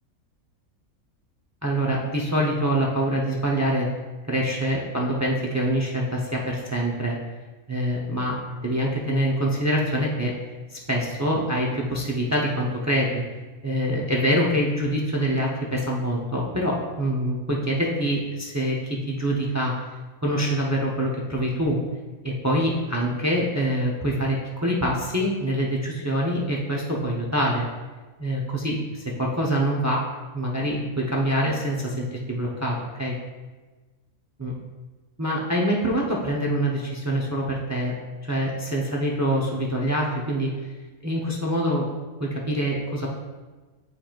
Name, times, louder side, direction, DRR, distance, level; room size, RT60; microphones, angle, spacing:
voice 1, 1.6-3.9 4.3-7.2 7.7-8.3 8.6-10.3 10.7-13.2 13.6-19.7 20.2-21.8 22.2-27.7 28.2-30.0 30.3-33.1 34.4-34.5 35.2-37.9 38.2-40.5 41.0-41.9 42.2-43.1, equal, 20° right, -3 dB, 0.4 m, -25 dB
9.6 x 4.5 x 2.5 m, 1.3 s
omnidirectional pair, 1.6 m